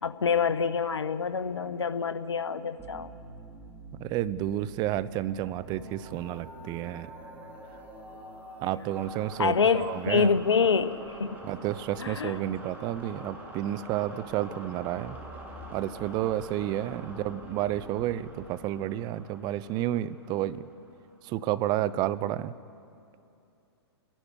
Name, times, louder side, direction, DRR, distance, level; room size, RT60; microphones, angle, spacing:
voice 1, 0.0-3.1 9.4-11.4 12.0-12.4, left 6 dB, 90° left, 12 dB, 1.0 m, -26 dB
sound 1, 2.8-21.3, right 1 dB, 10° right, 3.5 m, -45 dB
voice 2, 4.0-7.1 8.6-10.3 11.4-15.2 15.7-20.7 21.2-22.5, right 13 dB, 30° right, 16 dB, 0.6 m, -31 dB
28.0 x 11.5 x 9.9 m, 2.7 s
hypercardioid pair, 125°, 14 cm